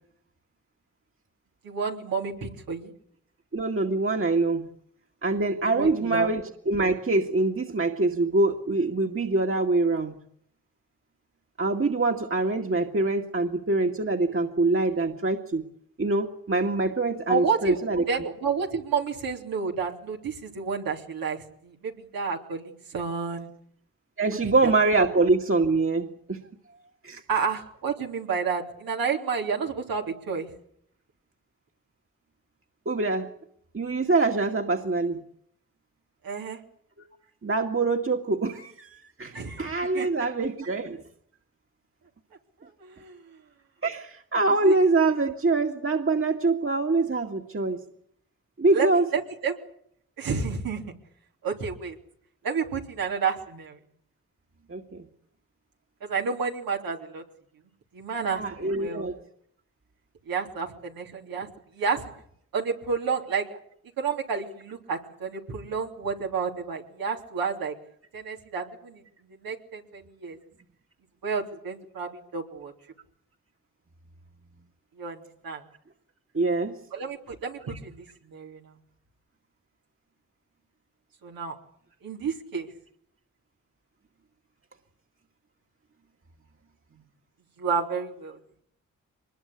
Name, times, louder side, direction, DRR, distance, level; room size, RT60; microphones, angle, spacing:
voice 1, 1.6-2.9 5.7-6.3 17.3-23.5 24.4-24.7 27.3-30.5 36.2-36.6 39.3-39.6 39.9-40.1 42.8-43.2 44.6-44.7 48.7-49.6 50.2-50.8 51.4-51.9 52.4-53.8 56.0-57.2 57.9-59.1 60.3-61.5 61.7-62.0 62.5-63.6 64.0-67.7 68.1-69.0 69.3-70.4 71.2-72.7 75.0-75.6 76.9-78.6 81.2-81.6 82.0-82.7 87.6-88.4, right 5 dB, 85° right, 1 dB, 3.4 m, -30 dB
voice 2, 3.5-4.7 5.2-10.2 11.6-15.6 16.0-18.0 24.2-26.4 27.0-27.2 32.9-33.3 33.7-35.2 37.0-37.1 37.4-41.0 43.8-47.8 48.6-49.1 54.7-55.1 58.3-59.2 76.3-76.8, right 3 dB, 40° right, 3 dB, 2.2 m, -24 dB
23.5 x 21.0 x 8.4 m, 0.68 s
supercardioid pair, 40°, 34 cm